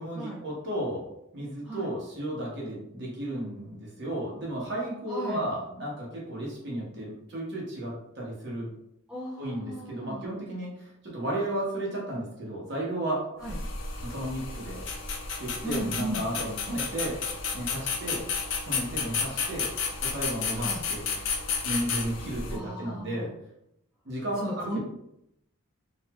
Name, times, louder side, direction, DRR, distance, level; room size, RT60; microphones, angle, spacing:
voice 1, 0.0-8.7 9.4-13.3 14.0-14.8 15.4-17.2 17.5-18.2 18.7-19.7 20.0-21.0 21.6-23.3 24.0-24.8, right 1 dB, 55° right, -4 dB, 0.9 m, -33 dB
voice 2, 5.1-5.4 9.1-10.3 13.4-13.6 15.6-16.2 20.5-20.8 22.5-23.3 24.2-24.8, equal, 5° right, -8 dB, 0.8 m, -36 dB
sound 1, 13.4-22.6, left 5 dB, 65° left, 0.4 m, -32 dB
2.9 x 2.4 x 2.2 m, 0.78 s
head